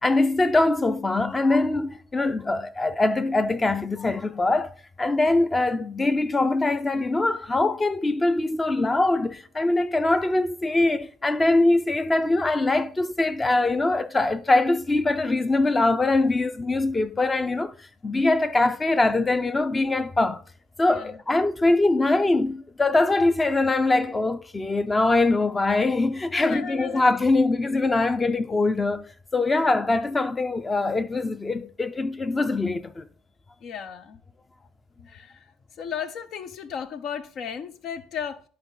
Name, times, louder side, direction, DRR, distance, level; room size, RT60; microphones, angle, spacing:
voice 1, 0.0-4.7 5.0-17.7 18.0-20.4 20.8-29.1 29.3-33.1, left 2 dB, 20° left, 0.7 m, -23 dB
voice 2, 26.3-27.1 33.6-34.2 35.1-35.3 35.8-38.4, left 7 dB, 55° left, 0.8 m, -35 dB
10.5 x 4.7 x 4.0 m
hypercardioid pair, 65°, 0 cm